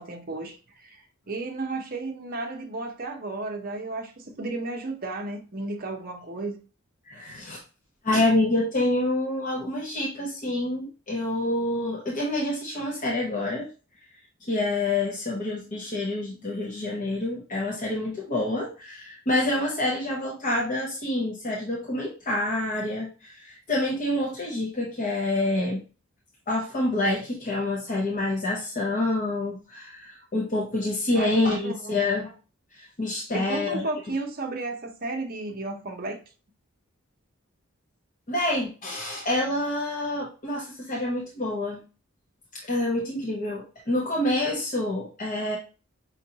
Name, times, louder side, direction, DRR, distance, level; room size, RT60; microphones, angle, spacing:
voice 1, 0.0-6.6 31.1-32.0 33.3-36.2, right 2 dB, 45° right, 0.8 m, -33 dB
voice 2, 7.0-7.6 8.0-13.7 14.5-25.8 26.5-32.3 32.7-33.8 38.3-41.8 42.5-45.6, left 2 dB, 35° left, 0.7 m, -27 dB
5.3 x 2.5 x 2.8 m
head